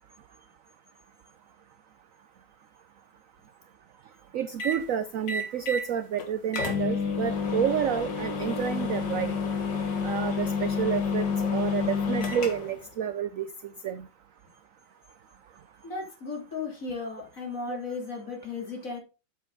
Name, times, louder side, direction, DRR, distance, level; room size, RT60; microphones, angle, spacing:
voice 1, 4.3-9.4 10.0-13.5 13.8-14.1 17.7-17.8, right 9 dB, 75° right, 13 dB, 0.7 m, -30 dB
sound 1, 4.6-4.8 5.3-5.9 6.2-6.3 6.5-12.8, left 5 dB, 70° left, 2.3 m, -29 dB
voice 2, 15.8-19.0, left 4 dB, 45° left, 1 dB, 3.5 m, -35 dB
8.0 x 7.6 x 4.1 m, 0.30 s
omnidirectional pair, 2.1 m